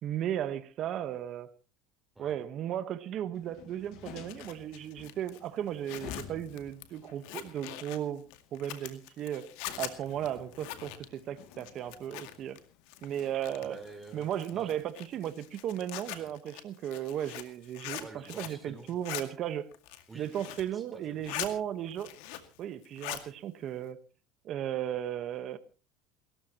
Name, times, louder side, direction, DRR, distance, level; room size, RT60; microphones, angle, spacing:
voice 1, 0.0-1.5 2.2-9.5 9.8-12.6 13.0-13.8 14.1-19.7 20.1-22.1 22.6-24.0 24.4-25.6, right 10 dB, 45° right, 11 dB, 1.3 m, -35 dB
sound 1, 3.3-16.1, left 8 dB, 60° left, 1.9 m, -53 dB
Zipper (clothing), 4.0-12.6 12.9-13.8 14.3-18.6 18.9-19.2 19.7-20.7 21.0-21.5 21.9-22.6 22.8-23.3, left 13 dB, 80° left, 2.1 m, -42 dB
voice 2, 13.6-14.8 16.2-16.3 18.0-18.9 20.1-21.4, right 2 dB, 10° right, 5 dB, 4.3 m, -50 dB
28.5 x 14.0 x 3.0 m, 0.35 s
supercardioid pair, 130°, 0 cm